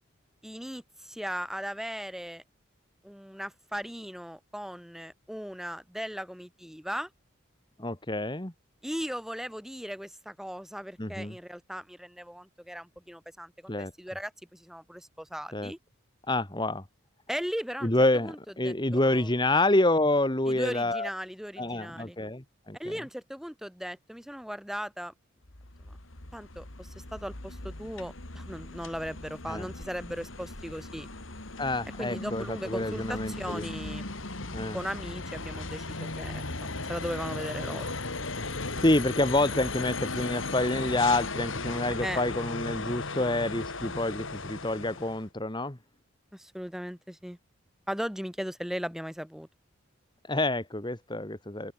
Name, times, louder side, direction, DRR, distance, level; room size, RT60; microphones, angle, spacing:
voice 1, 0.4-2.4 3.0-7.1 8.8-15.8 17.3-17.9 18.2-18.4 18.6-19.3 20.4-22.2 22.8-25.1 25.8-26.0 26.3-31.1 32.0-34.1 34.7-37.9 42.0-42.2 46.3-47.4 47.9-49.5, equal, ahead, 3.3 m, -37 dB
voice 2, 7.8-8.5 11.0-11.3 13.7-13.9 15.5-15.7 16.3-16.8 17.8-21.1 21.6-22.8 29.5-29.7 31.6-33.7 34.5-34.8 38.8-45.8 50.3-51.7, left 2 dB, 20° left, 1.9 m, -27 dB
sound 1, 25.4-45.2, left 3 dB, 70° left, 3.3 m, -37 dB
head